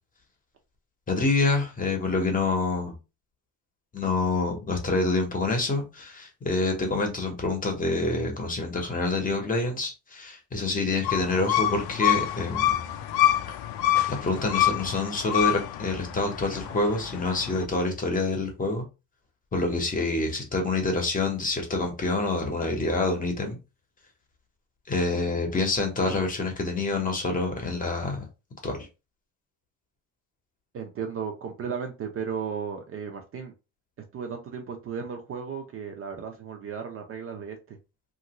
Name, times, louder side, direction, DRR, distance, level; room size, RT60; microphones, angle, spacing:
voice 1, 1.1-2.9 3.9-12.9 13.5-13.6 14.1-18.8 19.5-23.6 24.9-28.2 28.6-28.8, left 3 dB, 20° left, 3 dB, 0.8 m, -27 dB
sound 1, 11.0-17.7, left 13 dB, 80° left, 0.5 m, -27 dB
voice 2, 30.7-33.5 34.1-37.8, right 6 dB, 35° right, 4 dB, 0.5 m, -35 dB
2.9 x 2.5 x 2.9 m, 0.28 s
cardioid pair, 150°, 37 cm